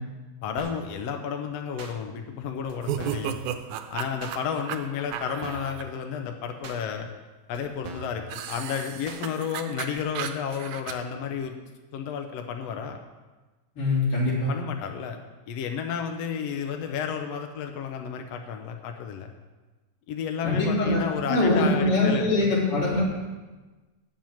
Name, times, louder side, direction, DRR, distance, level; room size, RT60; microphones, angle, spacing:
voice 1, 0.4-3.4 3.9-7.1 7.5-11.5 11.9-13.0 14.5-15.2 15.5-19.3 20.1-22.5, left 7 dB, 70° left, 4 dB, 1.7 m, -32 dB
sound 1, 0.6-0.9 1.8-1.9 2.7-2.8 3.0-3.3 4.2-4.4 5.1-5.2 5.4-5.8 6.6-6.8 7.5-7.6 7.8-8.2 9.1-9.2 10.0-10.1, right 3 dB, 65° right, 1.1 m, -40 dB
sound 2, 2.8-5.8 8.3-10.9, right 9 dB, 90° right, 2.1 m, -34 dB
voice 2, 13.8-14.5 20.4-21.0 21.3-23.0, left 2 dB, 45° left, -6 dB, 4.1 m, -23 dB
9.1 x 7.7 x 7.1 m, 1.2 s
omnidirectional pair, 3.4 m